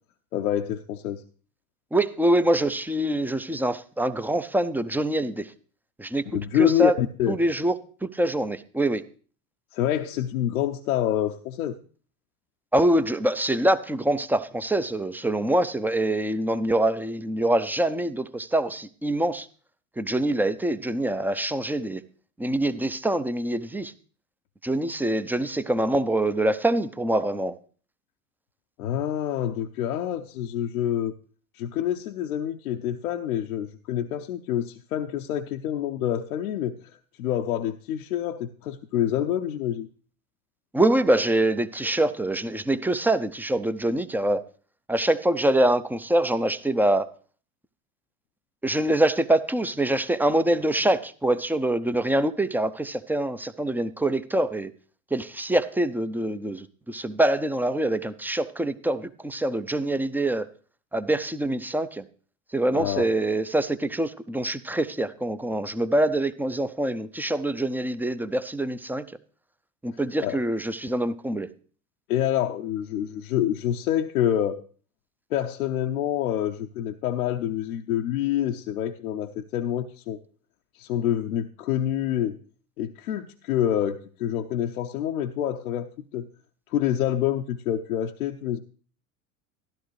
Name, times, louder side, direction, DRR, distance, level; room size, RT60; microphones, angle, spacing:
voice 1, 0.3-1.2 6.3-7.4 9.7-11.8 28.8-31.1 31.5-36.8 37.2-39.9 62.7-63.1 70.2-70.4 72.1-74.6 75.3-80.2 80.7-82.4 82.8-86.3 86.7-88.6, left 11 dB, 75° left, 4 dB, 0.7 m, -27 dB
voice 2, 1.9-5.5 6.0-6.3 6.6-6.9 7.3-9.0 12.7-19.5 20.0-22.0 22.4-23.9 24.6-27.6 40.7-44.4 44.9-47.1 48.6-54.7 55.1-60.5 60.9-62.0 62.5-69.0 69.8-71.5, right 1 dB, 5° right, 13 dB, 0.4 m, -25 dB
13.0 x 11.5 x 3.2 m, 0.41 s
hypercardioid pair, 75°, 44 cm